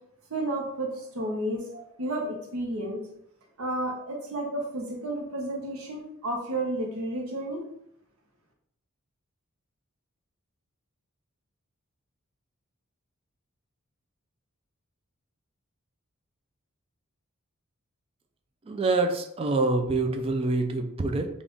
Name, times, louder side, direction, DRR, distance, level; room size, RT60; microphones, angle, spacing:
voice 1, 0.3-3.0 3.6-7.6, right 1 dB, 75° right, 1 dB, 0.8 m, -32 dB
voice 2, 18.7-21.3, right 3 dB, 25° right, 5 dB, 0.3 m, -26 dB
3.5 x 2.4 x 3.8 m, 0.75 s
head